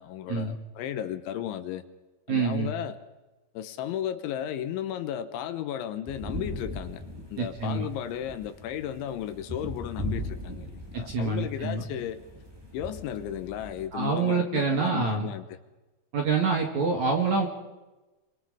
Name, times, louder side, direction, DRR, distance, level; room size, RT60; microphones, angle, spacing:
voice 1, 0.0-1.8 2.3-3.0 3.5-7.0 7.3-12.2 12.7-15.4, left 10 dB, 75° left, 10 dB, 3.4 m, -34 dB
voice 2, 2.3-2.7 7.4-7.9 10.9-11.8 13.9-15.3 16.1-17.5, right 4 dB, 50° right, 2 dB, 2.4 m, -26 dB
sound 1, 6.1-13.9, left 1 dB, 15° right, 0.9 m, -39 dB
26.5 x 25.0 x 5.0 m, 1.1 s
omnidirectional pair, 5.6 m